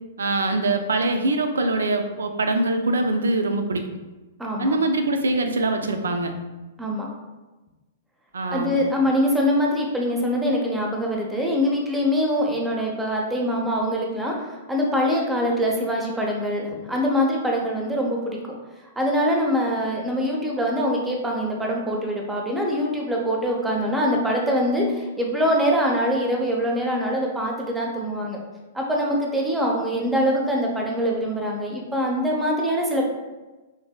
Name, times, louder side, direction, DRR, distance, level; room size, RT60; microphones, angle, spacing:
voice 1, 0.2-3.8 4.6-6.3 8.3-8.7, right 2 dB, 70° right, 6 dB, 0.3 m, -23 dB
voice 2, 4.4-4.8 6.8-7.1 8.5-18.4 19.0-28.4 28.7-33.1, equal, 5° right, -1 dB, 0.5 m, -23 dB
3.1 x 2.6 x 2.2 m, 1.1 s
figure-of-eight pair, 105°, 0 cm